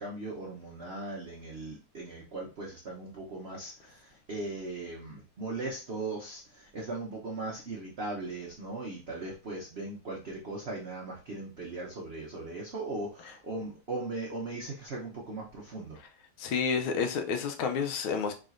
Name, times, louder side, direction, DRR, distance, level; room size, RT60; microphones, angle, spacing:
voice 1, 0.0-16.0, right 2 dB, 90° right, -3 dB, 0.5 m, -38 dB
voice 2, 16.4-18.3, left 6 dB, 80° left, 6 dB, 1.4 m, -30 dB
4.1 x 3.6 x 2.4 m, 0.33 s
omnidirectional pair, 2.3 m